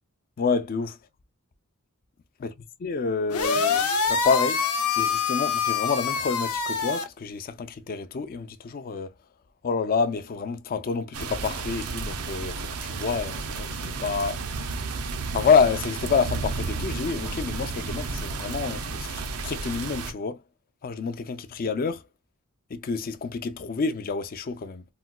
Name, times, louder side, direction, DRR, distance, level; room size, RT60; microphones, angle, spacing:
voice 1, 0.4-0.9 2.4-2.5 2.8-4.6 5.0-9.1 9.6-14.4 15.3-20.4 20.8-22.0 22.7-24.9, left 5 dB, 40° left, 0.4 m, -28 dB
sound 1, 3.3-7.0, left 5 dB, 80° left, 0.6 m, -25 dB
sound 2, 11.1-20.1, right 4 dB, 75° right, 0.5 m, -32 dB
3.9 x 2.2 x 2.2 m
head